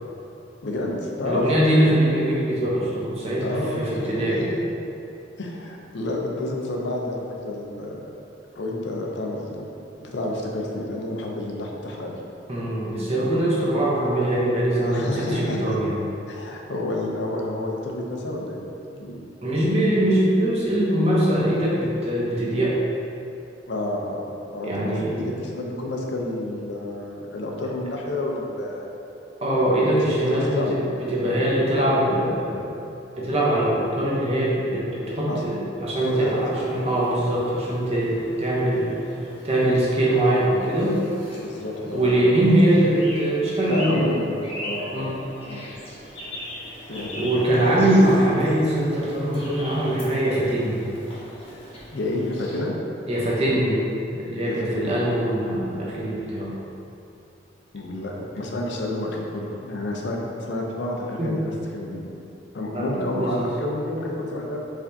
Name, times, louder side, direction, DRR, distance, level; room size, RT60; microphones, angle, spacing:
voice 1, 0.6-1.5 3.4-4.6 5.4-8.0 8.6-9.7 10.0-12.1 14.8-15.8 16.3-18.7 18.9-19.2 23.7-28.8 29.9-30.7 35.3-35.4 36.0-36.3 38.3-38.4 41.4-42.5 43.7-45.2 45.4-45.6 46.9-47.7 51.9-52.7 54.5-55.0 57.7-62.1 62.5-64.6, left 1 dB, 70° left, 0 dB, 0.5 m, -30 dB
voice 2, 1.2-4.4 12.5-16.0 19.4-22.8 24.6-25.4 29.4-30.8 31.1-32.8 33.1-35.5 35.8-38.9 39.4-40.9 41.9-44.0 44.9-45.2 47.1-50.8 53.1-53.8 54.1-56.5 58.2-58.3 61.2-61.3 62.7-63.5, right 1 dB, 35° right, -6 dB, 0.8 m, -22 dB
sound 1, 35.9-52.6, left 1 dB, 30° left, 0.8 m, -40 dB
4.8 x 3.4 x 2.7 m, 2.8 s
head